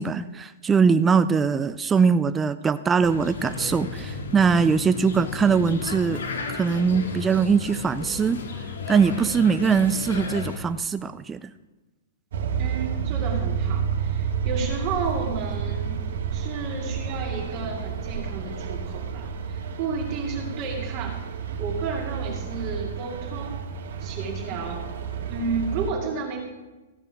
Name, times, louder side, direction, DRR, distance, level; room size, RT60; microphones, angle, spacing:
voice 1, 0.0-6.2 6.5-8.4 8.9-11.5, right 5 dB, 10° right, 11 dB, 0.3 m, -21 dB
sound 1, 3.0-10.6, left 4 dB, 85° left, 2.6 m, -34 dB
sound 2, 12.3-25.9, right 7 dB, 70° right, 2.0 m, -30 dB
voice 2, 12.6-16.0 16.3-21.2 21.5-23.6 24.0-24.9 25.3-26.4, right 4 dB, 35° right, -1 dB, 2.2 m, -32 dB
15.0 x 5.9 x 8.3 m, 1.1 s
hypercardioid pair, 160°, 0 cm